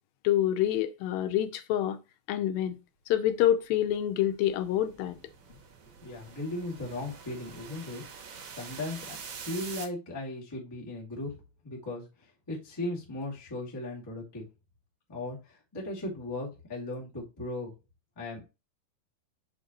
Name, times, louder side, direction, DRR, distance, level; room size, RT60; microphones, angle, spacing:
voice 1, 0.2-2.0 2.3-2.8 3.1-5.2, left 11 dB, 80° left, 2.3 m, -27 dB
sound 1, 3.9-9.9, right 6 dB, 75° right, 3.2 m, -46 dB
voice 2, 6.0-8.3 8.6-9.1 9.4-11.3 11.6-12.1 12.5-14.4 15.1-17.7 18.1-18.4, left 2 dB, 10° left, 1.1 m, -37 dB
6.5 x 4.9 x 2.9 m
omnidirectional pair, 4.4 m